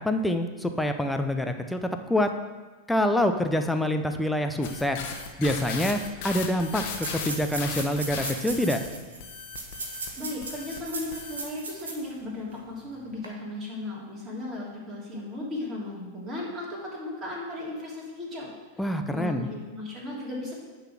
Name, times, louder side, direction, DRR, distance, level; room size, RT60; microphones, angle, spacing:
voice 1, 0.0-2.3 2.9-5.0 5.4-8.8 18.8-19.5, left 1 dB, 5° left, 6 dB, 0.7 m, -26 dB
sound 1, 4.6-8.9 9.2-10.1 10.4-10.8 11.1-11.4, left 6 dB, 50° left, 1.1 m, -36 dB
sound 2, 5.6-5.7 5.9-6.0 6.7-12.1 12.5-12.6 13.1-13.3, right 3 dB, 65° right, 1.4 m, -38 dB
voice 2, 9.9-18.5 19.1-20.5, left 2 dB, 20° right, -5 dB, 3.0 m, -36 dB
9.7 x 4.0 x 6.3 m, 1.3 s
figure-of-eight pair, 90°, 0 cm